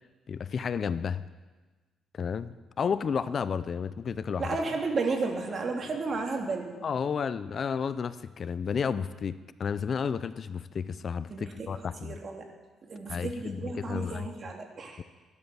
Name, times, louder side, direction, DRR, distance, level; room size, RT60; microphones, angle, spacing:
voice 1, 0.3-1.2 2.2-4.5 6.8-12.1 13.1-14.3 15.0-15.1, left 6 dB, 50° left, 15 dB, 0.5 m, -32 dB
voice 2, 4.4-6.8 11.3-11.7 12.0-12.5 12.8-15.0, right 3 dB, 45° right, 2 dB, 2.6 m, -33 dB
14.5 x 11.5 x 6.9 m, 1.3 s
cardioid pair, 90°, 0 cm